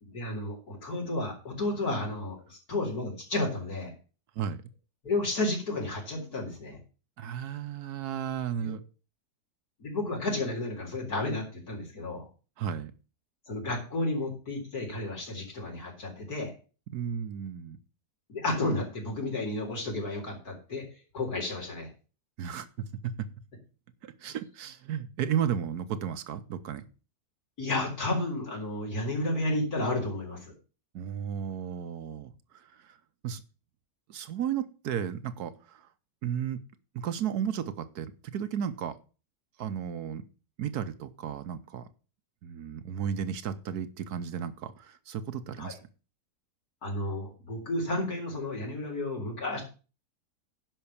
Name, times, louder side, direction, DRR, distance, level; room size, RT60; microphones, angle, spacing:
voice 1, 0.0-3.9 5.0-6.8 8.6-8.8 9.8-12.2 13.5-16.5 18.3-20.8 21.1-21.9 27.6-30.5 45.6-45.7 46.8-49.6, left 2 dB, 75° left, 0 dB, 4.4 m, -32 dB
voice 2, 7.2-8.8 12.6-12.9 16.9-17.8 22.4-22.7 23.0-23.1 24.0-26.8 30.9-32.3 32.9-33.0 33.2-33.4 34.1-35.8 36.2-36.6 36.9-39.0 39.6-40.2 40.6-41.9 42.4-45.8, right 8 dB, 80° right, 12 dB, 1.4 m, -33 dB
10.5 x 5.6 x 7.0 m, 0.35 s
omnidirectional pair, 1.6 m